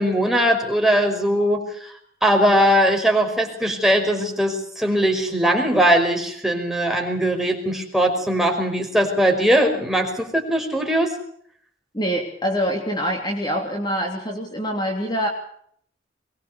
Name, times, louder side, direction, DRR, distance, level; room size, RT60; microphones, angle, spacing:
voice 1, 0.0-1.9 2.2-11.1, equal, ahead, 2 dB, 5.2 m, -20 dB
voice 2, 11.9-15.3, equal, 25° left, 2 dB, 3.2 m, -25 dB
23.5 x 21.5 x 6.9 m, 0.64 s
head